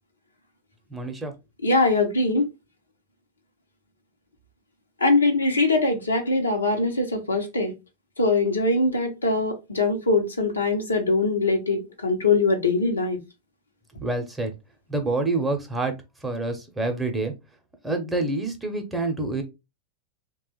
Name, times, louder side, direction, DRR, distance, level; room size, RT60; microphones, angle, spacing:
voice 1, 0.9-1.3 14.0-14.5 14.9-16.0 16.2-17.3 17.8-19.4, right 2 dB, 10° right, 0.8 m, -27 dB
voice 2, 1.6-2.5 5.0-7.7 8.2-13.2, left 3 dB, 75° left, 0.8 m, -22 dB
3.3 x 2.3 x 3.1 m
figure-of-eight pair, 90°, 0 cm